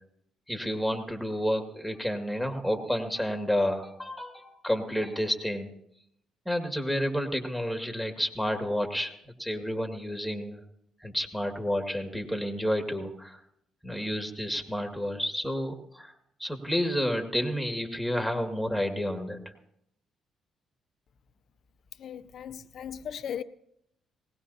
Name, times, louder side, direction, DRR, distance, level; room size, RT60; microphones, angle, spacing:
voice 1, 0.5-5.7 6.5-9.1 9.4-10.6 11.0-13.4 13.8-16.1 16.4-19.4, equal, ahead, 2.2 m, -30 dB
voice 2, 22.0-23.4, left 8 dB, 60° left, 0.6 m, -37 dB
19.5 x 18.0 x 2.8 m
hypercardioid pair, 50°, 0 cm